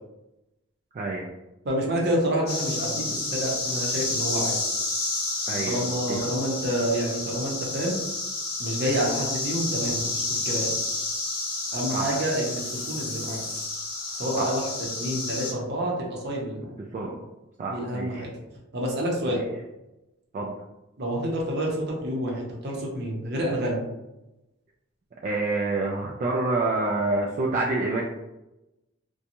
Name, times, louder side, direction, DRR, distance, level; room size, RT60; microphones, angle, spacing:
voice 1, 0.9-1.3 5.5-6.3 11.9-12.2 14.4-14.6 16.9-17.1 17.6-18.2 19.3-19.4 20.3-20.6 25.2-28.0, right 2 dB, 40° right, -2 dB, 0.3 m, -28 dB
voice 2, 1.6-4.5 5.6-7.9 8.6-10.7 11.7-13.4 14.1-14.6 14.9-16.7 17.0-17.1 17.7-18.3 18.7-19.4 21.0-23.8, equal, 55° right, -2 dB, 0.7 m, -28 dB
sound 1, 2.5-15.5, left 2 dB, 55° left, 0.8 m, -30 dB
2.8 x 2.2 x 2.5 m, 0.96 s
head